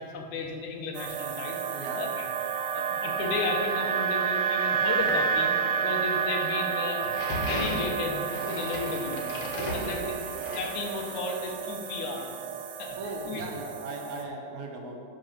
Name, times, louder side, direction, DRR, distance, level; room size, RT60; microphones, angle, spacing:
voice 1, 0.0-2.1 2.7-7.1 7.4-9.4 9.7-10.0 10.5-12.3 12.8-13.0 13.3-13.4, left 3 dB, 75° left, 2 dB, 2.4 m, -34 dB
sound 1, 0.9-14.2, right 6 dB, 85° right, 2.3 m, -30 dB
sound 2, 7.0-11.3, left 1 dB, 55° left, 2.3 m, -36 dB
voice 2, 9.6-10.2 13.0-15.0, right 2 dB, 70° right, 1 dB, 2.3 m, -37 dB
13.0 x 4.8 x 6.6 m, 2.4 s
omnidirectional pair, 3.6 m